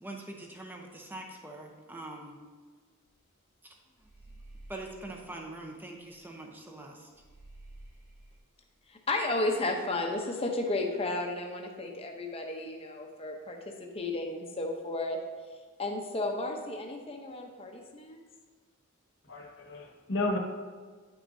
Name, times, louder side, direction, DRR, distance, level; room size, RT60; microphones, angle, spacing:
voice 1, 0.0-2.3 3.6-3.7 4.7-7.1, right 2 dB, 10° right, 1 dB, 0.8 m, -43 dB
sound 1, 3.1-3.3 3.6-6.4 6.7-6.8 7.1-8.4, right 1 dB, 45° right, 2.2 m, -52 dB
voice 2, 8.9-15.2 15.5-18.2, left 2 dB, 25° left, 2 dB, 0.8 m, -33 dB
voice 3, 19.2-20.4, left 2 dB, 55° left, 1 dB, 1.1 m, -32 dB
9.7 x 6.0 x 2.7 m, 1.5 s
head